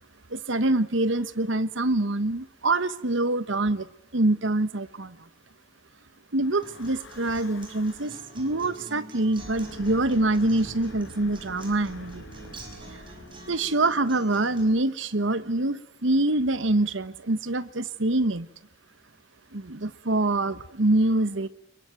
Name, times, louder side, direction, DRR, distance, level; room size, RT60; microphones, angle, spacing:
voice 1, 0.3-3.9 4.1-5.2 6.3-12.2 12.9-13.0 13.5-18.5 19.5-21.5, right 2 dB, 80° right, 14 dB, 1.3 m, -25 dB
Breathing / Wind, 6.4-8.4 9.2-14.6, left 2 dB, 85° left, 1.8 m, -46 dB
Acoustic guitar, 6.6-14.6, right 3 dB, 25° right, 5.3 m, -45 dB
26.5 x 22.5 x 9.2 m, 0.79 s
head